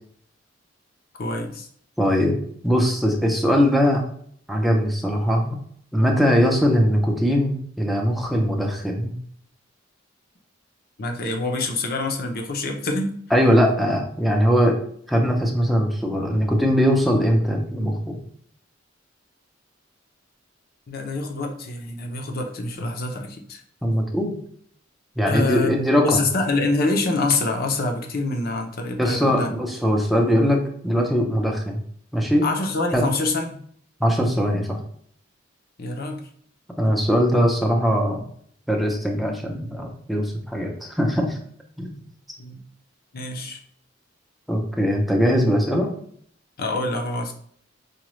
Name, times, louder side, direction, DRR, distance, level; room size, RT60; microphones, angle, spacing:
voice 1, 1.2-1.7 11.0-13.1 20.9-23.6 25.3-29.5 32.4-33.6 35.8-36.2 42.4-42.6 43.1-43.6 46.6-47.3, left 2 dB, 50° left, 3 dB, 0.6 m, -26 dB
voice 2, 2.0-2.4 2.6-4.0 4.5-5.6 5.9-9.1 13.3-14.8 15.1-18.2 23.8-24.3 25.2-26.2 29.0-31.8 32.1-32.5 32.9-33.0 34.0-34.8 36.8-38.3 38.7-41.4 41.8-41.9 44.5-45.9, equal, ahead, 1 dB, 0.6 m, -21 dB
4.9 x 2.3 x 3.1 m, 0.62 s
head